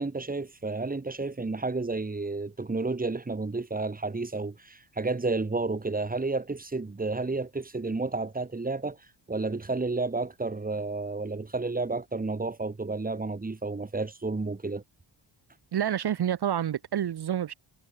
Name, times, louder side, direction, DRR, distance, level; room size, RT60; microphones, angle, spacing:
voice 1, 0.0-9.0 9.3-14.8, right 3 dB, 20° right, 5.0 m, -31 dB
voice 2, 15.7-17.5, right 10 dB, 55° right, 1.7 m, -28 dB
wide cardioid pair, 145°, 47 cm